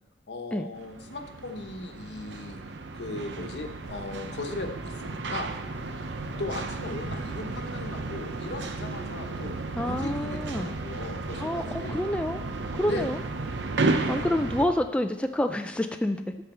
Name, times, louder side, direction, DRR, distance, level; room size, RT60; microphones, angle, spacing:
voice 1, 0.3-2.6 2.9-5.5 6.4-12.0 12.9-13.1 14.0-14.1, left 2 dB, 70° left, 5 dB, 1.0 m, -38 dB
sound 1, 0.7-14.7, right 3 dB, 85° right, 0.7 m, -33 dB
voice 2, 9.7-10.7 11.4-12.4 12.7-13.2 14.1-16.2, left 1 dB, 5° left, 6 dB, 0.3 m, -28 dB
13.0 x 5.3 x 4.3 m, 1.1 s
head